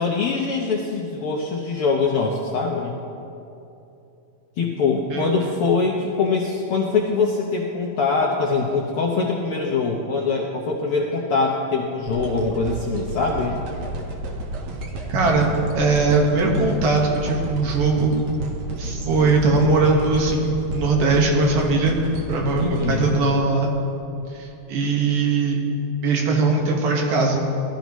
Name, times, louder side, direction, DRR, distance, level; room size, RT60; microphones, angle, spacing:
voice 1, 0.0-3.0 4.6-13.6 22.6-23.2, left 4 dB, 80° left, -1 dB, 1.2 m, -23 dB
sound 1, 12.1-24.3 24.8-24.9, right 2 dB, 65° right, 2.3 m, -31 dB
voice 2, 15.1-18.1 18.8-22.0 22.3-23.7 24.3-25.6 26.0-27.4, right 3 dB, 85° right, -1 dB, 3.2 m, -20 dB
18.5 x 13.0 x 3.1 m, 2.8 s
omnidirectional pair, 3.8 m